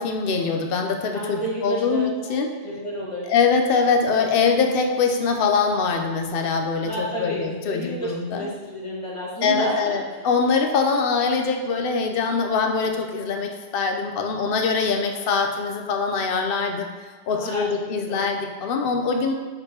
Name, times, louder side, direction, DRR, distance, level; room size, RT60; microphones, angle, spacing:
voice 1, 0.0-2.5 3.3-8.5 9.4-16.9 17.3-19.3, left 5 dB, 60° left, 3 dB, 0.8 m, -23 dB
voice 2, 1.1-3.3 4.1-4.2 6.8-10.2 17.3-18.3, right 1 dB, 25° left, -5 dB, 1.4 m, -31 dB
6.5 x 5.2 x 2.8 m, 1.5 s
omnidirectional pair, 1.2 m